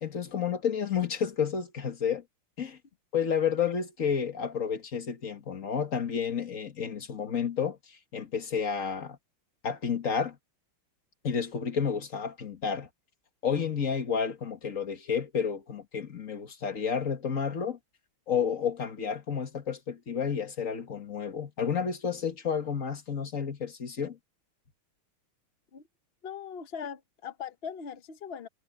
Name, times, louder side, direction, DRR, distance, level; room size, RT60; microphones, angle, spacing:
voice 1, 0.0-2.2 2.6-2.8 3.1-9.2 9.6-10.4 11.2-12.9 13.4-17.8 18.3-24.2, left 7 dB, 40° left, 1.8 m, -31 dB
voice 2, 26.2-28.5, left 7 dB, 55° left, 0.6 m, -40 dB
omnidirectional pair, 2.4 m